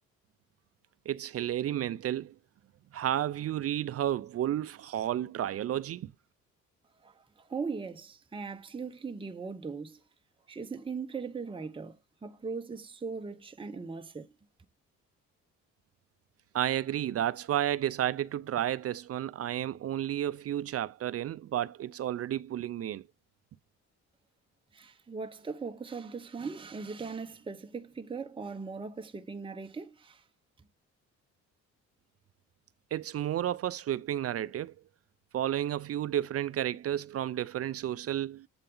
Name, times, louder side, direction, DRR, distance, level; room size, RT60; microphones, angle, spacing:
voice 1, 1.1-2.4 2.9-6.1 16.5-23.1 32.9-34.7 35.3-38.5, right 11 dB, 50° right, 0.5 m, -32 dB
voice 2, 7.0-10.0 10.5-14.3 24.7-30.2, right 5 dB, 15° right, 0.8 m, -39 dB
7.9 x 4.0 x 3.8 m
cardioid pair, 90°, 30 cm